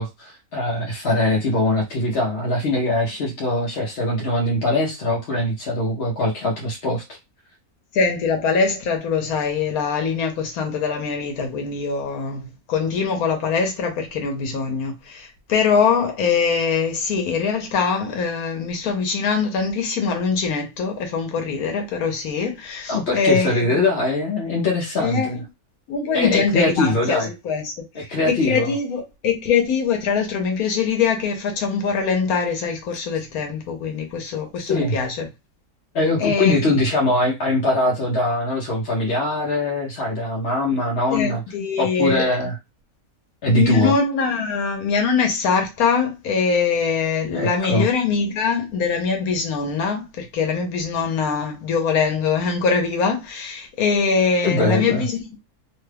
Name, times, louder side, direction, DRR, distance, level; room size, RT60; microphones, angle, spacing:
voice 1, 0.0-7.2 22.9-25.4 26.1-27.3 27.9-28.7 34.7-35.0 35.9-41.4 41.8-42.5 43.4-43.9 47.3-47.9 54.4-55.1, left 2 dB, 55° left, 0.8 m, -22 dB
voice 2, 7.9-23.8 25.0-25.4 25.9-27.2 27.4-27.8 28.3-35.3 36.2-36.8 41.1-42.2 43.5-55.2, left 5 dB, 80° left, 1.2 m, -22 dB
2.8 x 2.2 x 3.3 m
omnidirectional pair, 1.5 m